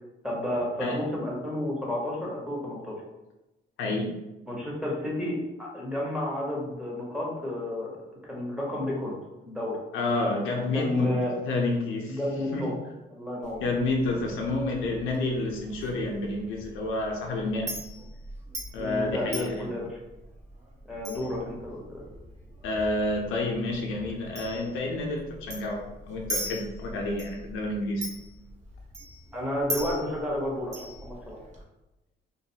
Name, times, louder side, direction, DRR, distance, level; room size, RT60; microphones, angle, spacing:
voice 1, 0.2-3.0 4.5-9.2 9.4-9.8 10.7-11.3 12.1-12.7 13.1-13.6 18.8-20.0 20.8-22.0 29.3-31.4, left 1 dB, 5° right, -4 dB, 0.9 m, -31 dB
voice 2, 3.8-4.2 9.9-11.2 11.5-12.2 12.5-12.7 13.6-17.7 18.7-19.7 22.6-28.1, left 2 dB, 90° left, 1 dB, 0.5 m, -29 dB
Chink clink, 13.4-31.6, equal, 35° right, 0.8 m, -41 dB
2.5 x 2.3 x 2.8 m, 1.0 s
cardioid pair, 90°, 20 cm